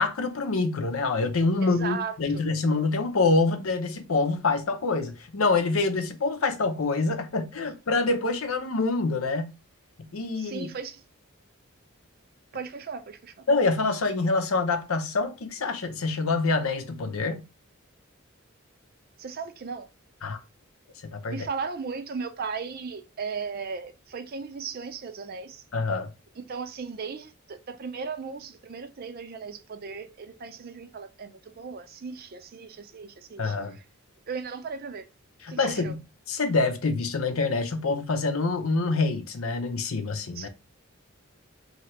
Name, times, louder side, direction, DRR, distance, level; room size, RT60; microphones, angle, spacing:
voice 1, 0.0-9.5 10.0-10.7 13.5-17.4 20.2-20.4 21.1-21.4 25.7-26.1 33.4-33.8 35.5-36.0 36.3-40.5, left 3 dB, 80° left, 0.7 m, -26 dB
voice 2, 1.6-2.4 10.4-11.0 12.5-13.4 19.2-19.9 21.3-25.6 26.4-33.8 34.3-35.1 35.5-35.9 40.3-40.5, right 5 dB, 45° right, 0.5 m, -36 dB
3.1 x 2.8 x 4.3 m
head